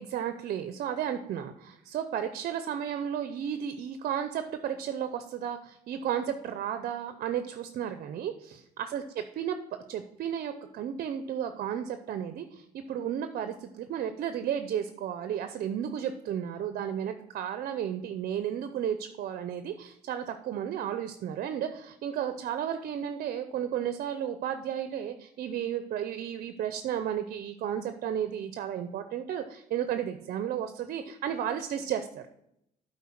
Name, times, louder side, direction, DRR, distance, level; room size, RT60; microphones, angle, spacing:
voice 1, 0.0-9.6 9.9-32.2, right 9 dB, 60° right, 9 dB, 0.6 m, -33 dB
8.3 x 4.6 x 5.8 m, 0.78 s
cardioid pair, 110°, 17 cm